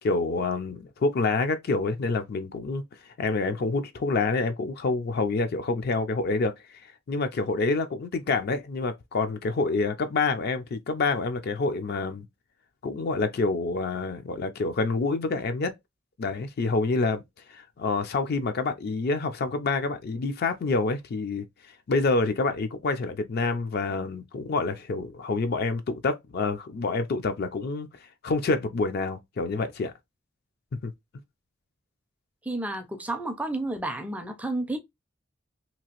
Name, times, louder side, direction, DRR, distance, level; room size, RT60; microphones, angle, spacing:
voice 1, 0.0-2.8 3.2-6.8 7.1-12.3 12.8-15.7 16.2-17.2 17.5-21.4 21.9-27.9 28.2-29.9 30.8-30.9, left 3 dB, 55° left, 0.4 m, -27 dB
voice 2, 32.5-34.8, right 2 dB, 5° right, 0.4 m, -31 dB
2.9 x 2.4 x 2.8 m
head